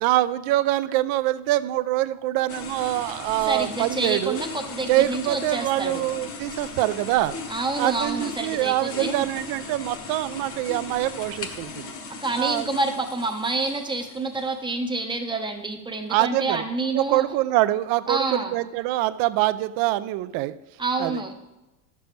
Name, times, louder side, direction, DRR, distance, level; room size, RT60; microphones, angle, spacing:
voice 1, 0.0-4.4 4.9-7.3 7.8-11.9 12.4-12.7 16.1-16.6 17.0-20.5 21.0-21.2, right 16 dB, 50° right, 15 dB, 0.5 m, -24 dB
sound 1, 2.5-14.8, left 4 dB, 30° left, 0.9 m, -38 dB
voice 2, 3.5-6.1 7.5-9.3 12.2-17.3 18.1-18.5 20.8-21.4, right 3 dB, 10° right, 5 dB, 0.7 m, -28 dB
10.0 x 6.8 x 3.1 m, 0.99 s
supercardioid pair, 125°, 46 cm